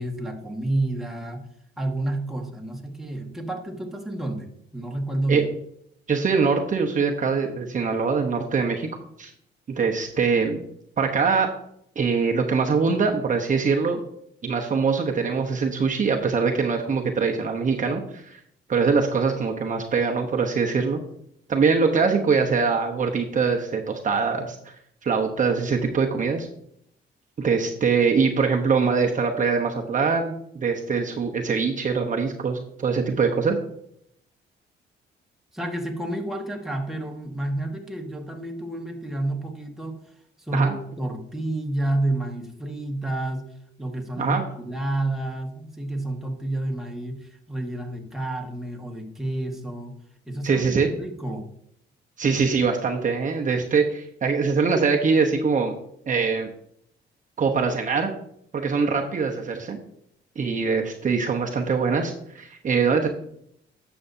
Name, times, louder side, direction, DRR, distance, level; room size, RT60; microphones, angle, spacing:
voice 1, 0.0-1.5 1.8-5.4 35.5-40.1 40.4-43.4 43.8-49.9 50.3-51.5, right 1 dB, ahead, 1 dB, 1.6 m, -30 dB
voice 2, 6.1-8.9 9.2-9.3 9.8-10.6 11.0-11.5 12.0-14.0 14.4-18.4 18.7-21.0 21.5-24.7 25.0-26.5 27.4-33.6 40.5-40.7 44.2-44.4 50.4-50.9 52.2-55.7 56.1-56.5 57.4-58.1 58.5-59.8 60.4-63.1, right 5 dB, 40° right, 2 dB, 1.0 m, -23 dB
10.5 x 6.9 x 2.7 m, 0.71 s
cardioid pair, 90°, 20 cm